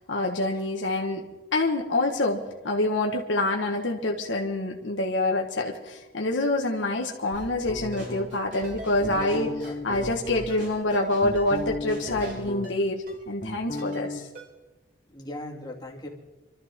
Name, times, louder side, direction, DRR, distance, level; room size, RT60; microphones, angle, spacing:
voice 1, 0.1-1.2 1.5-9.5 9.8-14.3, left 2 dB, 85° left, 1 dB, 1.5 m, -26 dB
Drum kit / Snare drum, 7.3-12.5, equal, 70° right, 7.0 m, -43 dB
sound 1, 7.7-8.5 9.0-10.5 10.9-12.9 13.1-14.2, left 2 dB, 40° left, 1.1 m, -35 dB
Ringtone, 7.9-8.1 8.6-8.9 9.2-9.3 9.6-9.8 10.4-10.6 10.9-11.1 11.4-11.5 12.1-12.3 12.6-12.8 13.1-13.2 13.8-14.0 14.4-14.5, equal, 50° right, 4.4 m, -42 dB
voice 2, 9.0-9.8 15.1-16.1, left 1 dB, 20° left, -2 dB, 2.5 m, -38 dB
26.5 x 13.5 x 3.7 m, 1.1 s
head